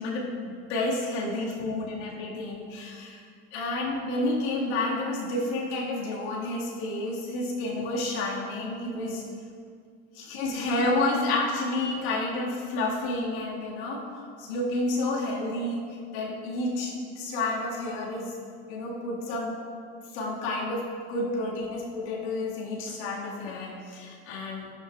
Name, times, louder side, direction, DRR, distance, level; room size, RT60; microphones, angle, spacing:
voice 1, 0.0-3.2 3.5-9.2 10.2-15.8 16.1-18.3 18.7-19.5 20.1-24.7, left 2 dB, 75° left, -3 dB, 1.8 m, -30 dB
10.5 x 8.3 x 2.3 m, 2.1 s
hypercardioid pair, 80°, 34 cm